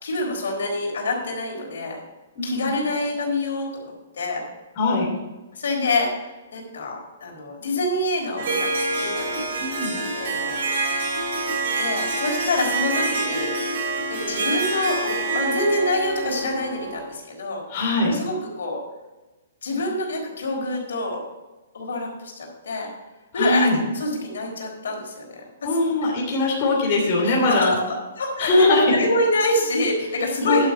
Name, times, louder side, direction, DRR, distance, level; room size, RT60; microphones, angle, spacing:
voice 1, 0.0-2.0 2.4-4.4 5.5-11.1 11.8-13.8 14.1-17.6 18.0-18.8 19.6-21.2 21.7-22.9 23.3-23.7 23.9-25.8 27.2-28.7 28.9-30.7, left 2 dB, 80° left, 0 dB, 4.1 m, -27 dB
voice 2, 2.4-2.7 4.8-5.1 9.6-10.0 17.7-18.1 23.3-23.8 25.6-27.8 28.4-28.8 30.4-30.7, left 2 dB, 30° left, -4 dB, 3.0 m, -21 dB
Harp, 8.4-17.1, right 3 dB, 55° right, 4.0 m, -26 dB
11.0 x 6.2 x 5.8 m, 1.1 s
hypercardioid pair, 165°, 0 cm